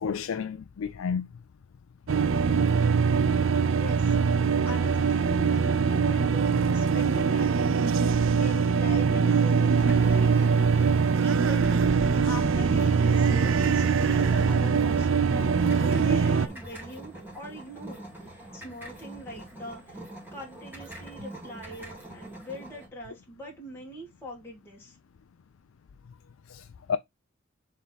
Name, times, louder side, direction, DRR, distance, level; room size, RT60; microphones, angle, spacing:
voice 1, 0.0-1.3 26.5-27.0, left 6 dB, 85° left, 0.4 m, -31 dB
sound 1, 2.1-16.5, right 5 dB, 70° right, 0.5 m, -23 dB
voice 2, 3.7-4.2 4.6-10.9 11.2-11.9 12.3-18.1 18.5-20.0 20.3-25.0, equal, 10° left, 2.1 m, -42 dB
sound 2, 9.7-22.9, right 1 dB, 10° right, 2.4 m, -44 dB
6.9 x 3.8 x 4.0 m
head